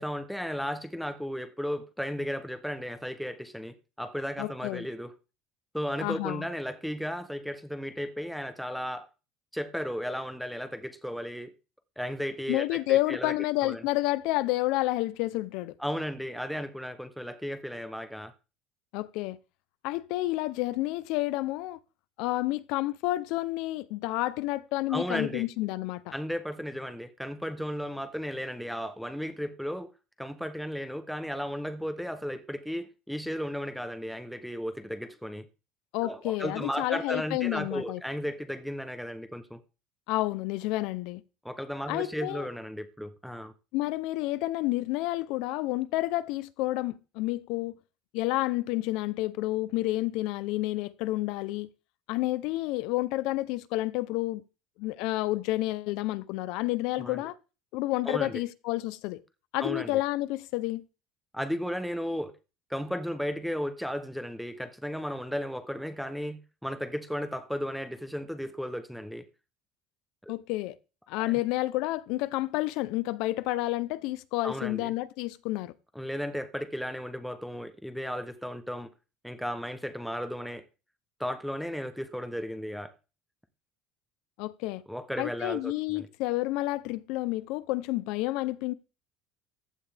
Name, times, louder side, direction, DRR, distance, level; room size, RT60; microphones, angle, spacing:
voice 1, 0.0-5.1 5.7-9.1 9.5-11.5 12.0-13.3 13.6-13.8 15.8-18.3 24.9-25.5 26.1-29.9 30.2-35.5 36.0-39.6 41.4-43.5 57.0-57.2 58.0-58.4 59.6-60.0 61.3-62.3 62.7-69.2 70.2-70.3 71.2-71.3 74.4-74.9 75.9-78.9 79.2-80.6 81.2-82.9 84.9-86.1, equal, ahead, 0.9 m, -35 dB
voice 2, 4.4-4.9 6.0-6.5 12.5-15.7 18.9-19.4 19.8-21.8 22.2-26.1 35.9-38.0 40.1-41.2 41.9-42.5 43.7-47.7 48.1-51.7 52.1-54.4 54.8-57.4 57.7-59.2 59.5-60.8 70.3-70.7 71.1-75.7 84.4-84.8 85.2-88.7, left 18 dB, 65° left, 0.7 m, -30 dB
15.0 x 11.0 x 3.5 m
cardioid pair, 175°, 0 cm